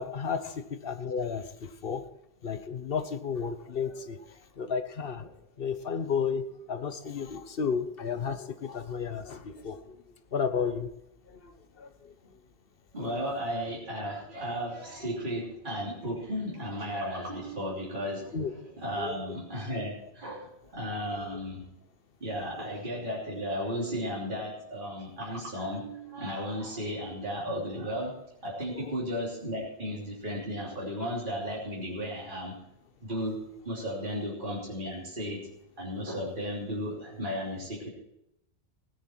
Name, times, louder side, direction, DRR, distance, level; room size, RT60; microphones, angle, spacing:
voice 1, 0.0-2.0 2.4-4.2 4.6-5.2 5.6-6.4 6.7-10.0 10.3-10.9 11.4-11.5 11.8-11.9 18.3-18.5 19.0-19.1 28.8-28.9, left 6 dB, 60° left, 9 dB, 1.2 m, -32 dB
voice 2, 12.9-21.6 22.2-28.1 28.4-32.5 33.0-33.4 33.6-35.4 35.8-37.9, equal, 50° right, -6 dB, 3.4 m, -34 dB
17.0 x 9.8 x 4.5 m, 0.82 s
omnidirectional pair, 1.1 m